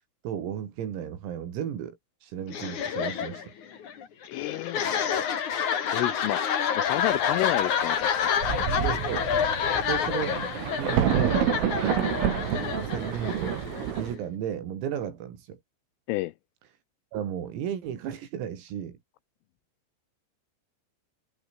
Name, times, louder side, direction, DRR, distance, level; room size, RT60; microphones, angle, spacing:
voice 1, 0.2-3.5 8.8-9.3 9.8-10.5 10.8-11.4 11.8-12.1 12.8-13.6 14.0-15.6 17.1-19.0, right 9 dB, 85° right, 6.3 m, -34 dB
sound 1, 2.5-14.2, left 8 dB, 45° left, 3.2 m, -28 dB
voice 2, 4.3-5.2 5.9-8.2 16.1-16.3, left 18 dB, 85° left, 3.4 m, -31 dB
Thunder, 8.0-8.1 8.4-14.2, right 9 dB, 70° right, 5.5 m, -28 dB
omnidirectional pair, 6.0 m